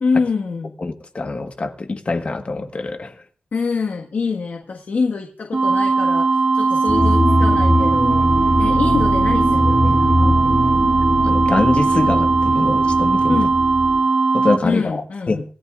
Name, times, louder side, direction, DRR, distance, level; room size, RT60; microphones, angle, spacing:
voice 1, 0.0-0.7 3.5-10.4 13.3-13.5 14.6-15.4, left 4 dB, 70° left, 1.6 m, -25 dB
voice 2, 0.8-3.2 11.2-13.4 14.3-15.4, left 3 dB, 45° left, 1.5 m, -24 dB
sound 1, 5.5-14.6, right 4 dB, 40° right, 0.8 m, -18 dB
sound 2, 6.9-14.0, left 1 dB, 5° left, 2.6 m, -21 dB
26.0 x 14.0 x 2.5 m
wide cardioid pair, 110°, 3 cm